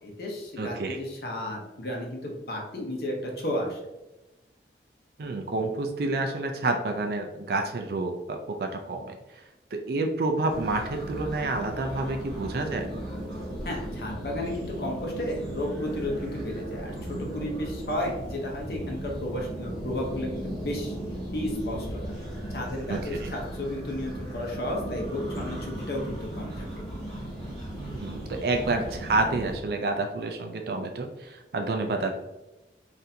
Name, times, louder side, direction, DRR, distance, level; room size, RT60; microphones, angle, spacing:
voice 1, 0.0-3.8 13.6-20.9 21.3-22.0 22.5-26.7, left 1 dB, 55° left, -1 dB, 0.7 m, -33 dB
voice 2, 0.6-1.0 5.2-9.2 9.7-12.9 22.9-23.3 27.7-32.1, right 2 dB, 55° right, 4 dB, 0.3 m, -29 dB
sound 1, 10.5-29.6, right 1 dB, ahead, 1.2 m, -36 dB
4.1 x 2.6 x 2.6 m, 1.0 s
head